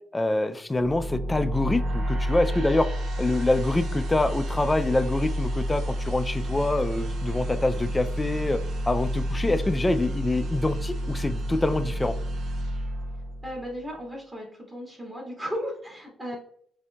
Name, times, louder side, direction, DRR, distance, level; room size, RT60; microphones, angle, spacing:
voice 1, 0.1-2.9 3.2-8.6 8.9-12.2, left 2 dB, 15° left, 11 dB, 0.3 m, -25 dB
sound 1, 0.7-13.8, equal, 65° right, 0.6 m, -30 dB
voice 2, 13.4-16.4, equal, 20° right, -2 dB, 1.5 m, -35 dB
5.5 x 2.7 x 2.2 m, 0.63 s
cardioid pair, 90°, 0 cm